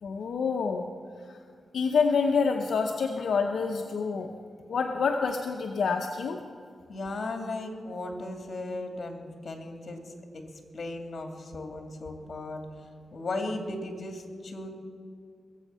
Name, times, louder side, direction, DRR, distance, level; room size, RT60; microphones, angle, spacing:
voice 1, 0.0-0.8 1.2-1.4 1.7-4.3 4.7-6.4, left 5 dB, 80° left, 3 dB, 0.8 m, -27 dB
voice 2, 6.9-10.4 10.7-12.6 13.1-14.7, left 2 dB, 55° left, 4 dB, 2.5 m, -36 dB
21.0 x 8.3 x 5.6 m, 2.2 s
cardioid pair, 70°, 0 cm